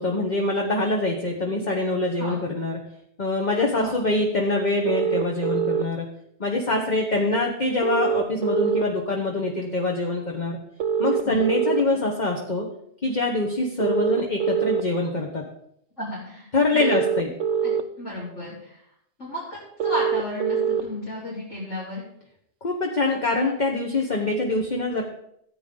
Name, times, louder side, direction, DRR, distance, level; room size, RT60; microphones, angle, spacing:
voice 1, 0.0-2.8 3.2-6.1 6.4-10.6 11.0-12.7 13.0-15.5 16.5-17.3 22.6-25.0, left 2 dB, 40° left, 0 dB, 1.3 m, -24 dB
sound 1, 4.9-5.8 7.8-8.8 10.8-11.8 13.8-14.8 16.8-17.8 19.8-20.8, right 7 dB, 85° right, 1.1 m, -24 dB
voice 2, 16.0-17.0 17.6-18.8 19.2-22.1, left 1 dB, 75° left, -9 dB, 4.4 m, -34 dB
14.5 x 9.0 x 3.9 m, 0.72 s
omnidirectional pair, 1.3 m